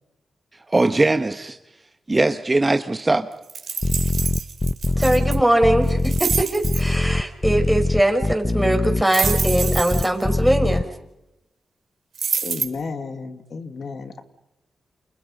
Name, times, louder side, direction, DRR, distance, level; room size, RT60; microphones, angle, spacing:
voice 1, 0.7-1.6 2.1-3.3, right 2 dB, 25° right, 8 dB, 1.4 m, -20 dB
sound 1, 3.5-5.3 5.9-6.8 9.1-10.2 12.1-12.6, right 6 dB, 75° right, 3.7 m, -27 dB
sound 2, 3.8-10.8, left 2 dB, 20° left, 0.9 m, -22 dB
voice 2, 5.0-10.8, right 1 dB, 5° right, 4 dB, 5.7 m, -21 dB
voice 3, 12.4-14.2, left 4 dB, 65° left, 8 dB, 2.1 m, -32 dB
29.5 x 28.5 x 5.6 m, 0.89 s
cardioid pair, 60°, 0 cm